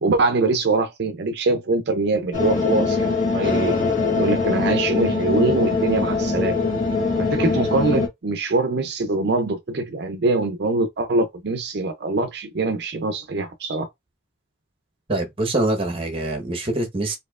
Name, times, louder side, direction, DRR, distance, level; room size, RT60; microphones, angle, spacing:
voice 1, 0.0-3.7 4.1-6.6 7.2-13.9, right 3 dB, 55° right, 0.5 m, -23 dB
sound 1, 2.3-8.1, left 4 dB, 40° left, 1.2 m, -22 dB
voice 2, 15.1-17.2, right 2 dB, 30° right, 1.0 m, -24 dB
4.3 x 2.7 x 2.4 m
head